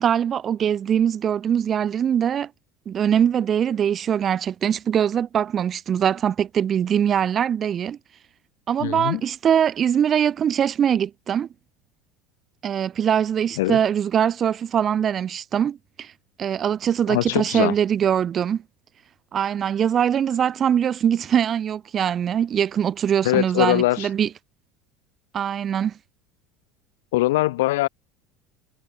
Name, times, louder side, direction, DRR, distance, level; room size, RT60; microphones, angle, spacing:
voice 1, 0.0-2.5 2.9-8.0 8.7-11.5 12.6-16.1 16.4-18.6 19.3-24.3 25.3-25.9, right 9 dB, 40° right, 1.0 m, -22 dB
voice 2, 8.8-9.2 13.6-13.8 17.1-17.7 23.2-24.1 27.1-27.9, left 18 dB, 80° left, 2.8 m, -22 dB
supercardioid pair, 95°, 0 cm